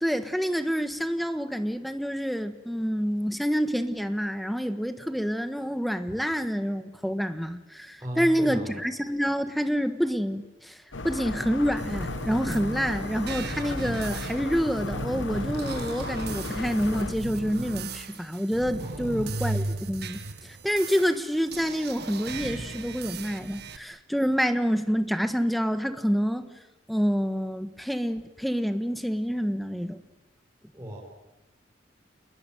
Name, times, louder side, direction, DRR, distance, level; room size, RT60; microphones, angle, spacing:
voice 1, 0.0-10.7 11.0-26.5 26.9-30.0, equal, ahead, 9 dB, 1.4 m, -27 dB
voice 2, 8.0-8.7 18.8-19.5 30.7-31.0, equal, 15° right, -3 dB, 5.7 m, -36 dB
sound 1, 10.9-17.1, left 3 dB, 70° left, 1.3 m, -35 dB
sound 2, 11.8-23.8, right 3 dB, 60° right, 1.7 m, -36 dB
28.5 x 20.5 x 9.2 m, 1.1 s
head